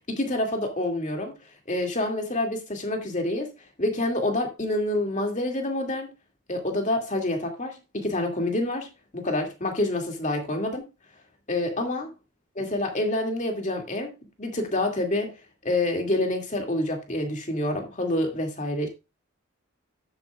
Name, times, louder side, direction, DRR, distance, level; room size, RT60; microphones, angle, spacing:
voice 1, 0.1-1.4 1.7-3.5 3.8-6.1 6.5-8.9 9.1-10.9 11.5-12.1 12.6-14.1 14.4-15.3 15.6-18.9, left 1 dB, 35° left, 2.3 m, -27 dB
12.0 x 8.8 x 2.4 m
head